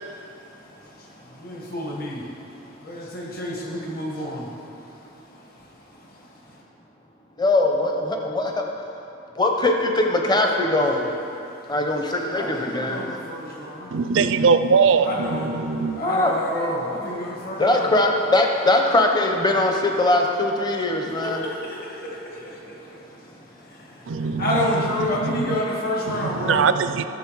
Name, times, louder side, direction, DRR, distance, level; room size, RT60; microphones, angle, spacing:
voice 1, 0.0-6.6 11.3-11.7 12.3-14.0 15.0-17.9 21.1-26.7, left 1 dB, 50° left, -3 dB, 1.7 m, -31 dB
voice 2, 7.4-8.7 9.4-11.1 11.7-13.0 16.0-16.3 17.6-21.4, left 2 dB, 20° left, 2 dB, 0.8 m, -21 dB
voice 3, 13.9-16.0 24.1-25.6 26.1-27.0, right 5 dB, 70° right, 11 dB, 0.4 m, -22 dB
14.5 x 6.6 x 4.7 m, 2.8 s
head